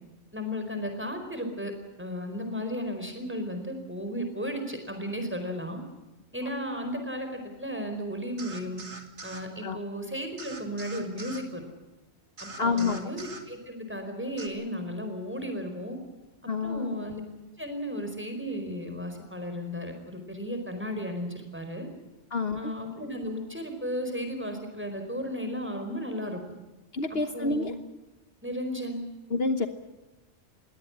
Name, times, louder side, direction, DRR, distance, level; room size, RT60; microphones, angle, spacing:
voice 1, 0.3-1.7 2.0-5.8 6.3-8.8 9.2-11.6 12.4-16.0 16.6-17.2 17.6-21.9 22.5-26.4 27.1-27.7 28.4-29.0, equal, 10° right, 5 dB, 4.7 m, -34 dB
sound 1, 8.4-9.5 10.4-11.5 12.4-13.5 14.4-14.5, right 2 dB, 75° right, 2.4 m, -43 dB
voice 2, 12.6-13.0 16.5-16.9 22.3-22.7 26.9-27.7 29.3-29.7, left 4 dB, 55° left, 8 dB, 1.3 m, -28 dB
21.0 x 17.5 x 10.0 m, 1.1 s
omnidirectional pair, 1.2 m